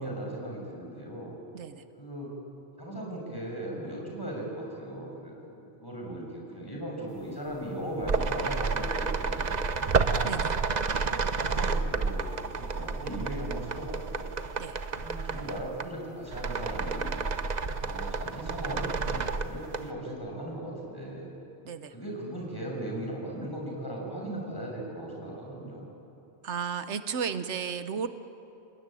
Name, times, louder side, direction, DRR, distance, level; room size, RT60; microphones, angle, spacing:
voice 1, 0.0-1.4 2.0-2.3 2.8-10.1 11.0-14.3 15.0-17.2 17.8-21.3 21.9-25.9, right 1 dB, 20° left, -2 dB, 6.4 m, -38 dB
sound 1, 7.6-7.7 8.0-15.9 16.2-19.9, right 4 dB, 40° right, 0.9 m, -30 dB
voice 2, 10.2-10.6 14.6-14.8 21.6-21.9 26.4-28.1, right 6 dB, 90° right, 11 dB, 1.2 m, -33 dB
28.5 x 19.5 x 9.1 m, 2.9 s
omnidirectional pair, 1.1 m